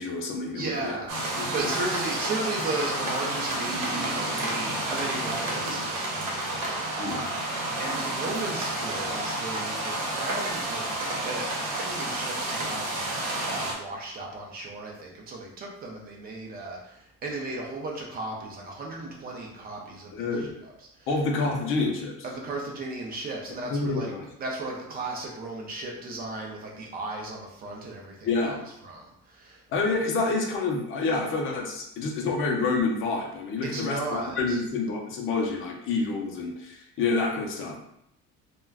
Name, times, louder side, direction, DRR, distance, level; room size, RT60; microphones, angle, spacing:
voice 1, 0.0-1.0 1.4-1.8 7.0-7.2 20.1-20.6 21.1-22.1 23.7-24.2 28.2-28.6 29.7-37.8, left 3 dB, 45° left, 1 dB, 0.5 m, -28 dB
voice 2, 0.5-10.9 11.2-13.2 13.4-21.1 22.2-24.1 24.4-29.6 33.6-34.6, right 2 dB, 30° right, -1 dB, 0.4 m, -35 dB
sound 1, 1.1-13.7, right 1 dB, 75° right, 0.9 m, -30 dB
2.3 x 2.1 x 3.4 m, 0.79 s
cardioid pair, 165°, 30 cm